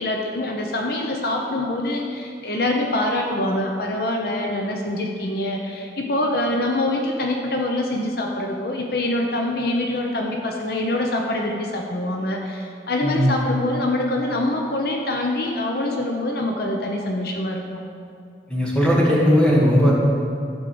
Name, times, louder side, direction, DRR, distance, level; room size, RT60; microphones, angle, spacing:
voice 1, 0.0-17.8, left 1 dB, 60° left, 1 dB, 0.9 m, -25 dB
voice 2, 13.0-13.4 18.5-19.9, equal, 5° left, -5 dB, 2.0 m, -17 dB
13.5 x 5.4 x 7.0 m, 2.4 s
head